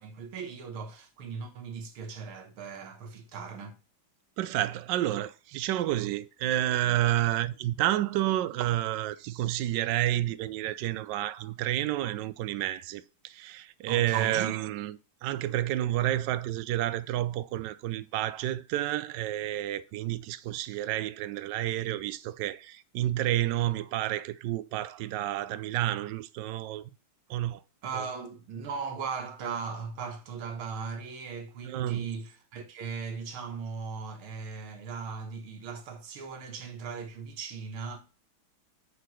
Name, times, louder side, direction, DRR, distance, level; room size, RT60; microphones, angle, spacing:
voice 1, 0.0-3.8 13.9-14.6 27.8-38.0, right 5 dB, 90° right, 2.1 m, -38 dB
voice 2, 4.4-14.9 15.2-26.9 27.3-27.6 27.9-28.1 31.6-32.1, right 14 dB, 75° right, 1.0 m, -30 dB
6.9 x 3.9 x 6.1 m
omnidirectional pair, 2.3 m